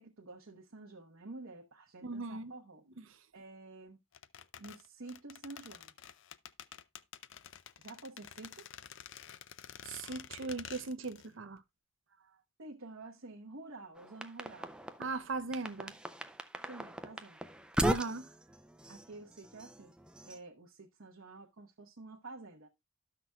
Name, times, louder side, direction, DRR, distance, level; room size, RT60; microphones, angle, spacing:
voice 1, 0.0-2.9 3.3-4.0 4.6-5.9 7.8-8.7 12.6-14.8 16.7-17.4 18.9-19.9 20.2-22.7, right 2 dB, 85° right, 1.0 m, -50 dB
voice 2, 2.0-2.5 3.0-3.2 9.8-11.6 15.0-15.9 17.8-18.3, right 3 dB, 65° right, 0.6 m, -38 dB
sound 1, 4.1-11.3 11.6-11.7, left 9 dB, 60° left, 0.4 m, -50 dB
sound 2, 14.0-15.2 15.5-20.4, right 1 dB, 5° right, 0.3 m, -38 dB
13.0 x 5.9 x 2.3 m
head